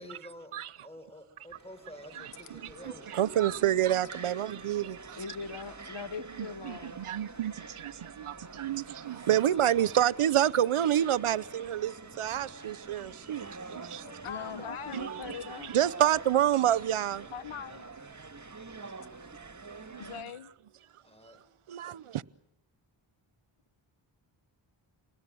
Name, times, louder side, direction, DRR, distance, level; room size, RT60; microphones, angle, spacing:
voice 1, 0.0-3.1 21.0-21.4, equal, 10° left, 5.3 m, -49 dB
sound 1, 1.5-20.2, right 4 dB, 35° right, 2.2 m, -47 dB
voice 2, 3.1-5.2 6.6-14.0 14.9-17.3 18.7-18.8 19.9-20.0 21.7-22.2, right 11 dB, 85° right, 0.8 m, -28 dB
voice 3, 5.2-7.0 14.2-15.8, left 6 dB, 60° left, 1.2 m, -41 dB
voice 4, 14.0-15.1 17.3-17.9 20.0-20.5, left 8 dB, 85° left, 1.2 m, -42 dB
28.0 x 21.0 x 7.7 m
cardioid pair, 55°, 49 cm